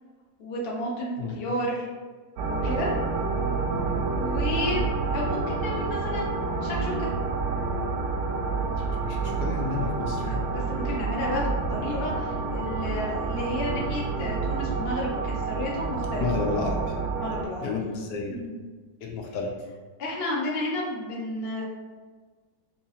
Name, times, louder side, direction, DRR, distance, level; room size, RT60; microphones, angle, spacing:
voice 1, 0.4-1.9 2.5-2.9 4.1-4.8 5.1-7.1 10.2-16.2 17.2-17.9 18.3-18.5 20.0-21.6, left 1 dB, 50° left, -4 dB, 0.8 m, -32 dB
sound 1, 2.4-17.5, right 4 dB, 70° right, 1.0 m, -28 dB
voice 2, 8.8-10.4 16.2-16.8 17.6-18.4 19.0-19.5, left 4 dB, 80° left, 0 dB, 1.2 m, -31 dB
4.0 x 2.8 x 2.7 m, 1.4 s
omnidirectional pair, 1.9 m